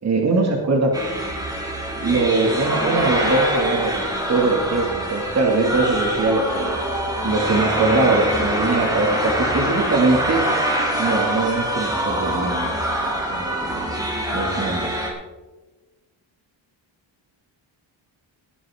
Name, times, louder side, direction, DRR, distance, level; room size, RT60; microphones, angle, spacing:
voice 1, 0.0-1.0 2.0-6.7 7.2-10.5 11.0-12.7 13.3-14.0 14.3-14.9, right 3 dB, 35° right, 1 dB, 2.2 m, -21 dB
sound 1, 0.9-15.1, right 1 dB, 10° right, 2.8 m, -24 dB
18.5 x 9.6 x 3.6 m, 1.2 s
cardioid pair, 130°, 47 cm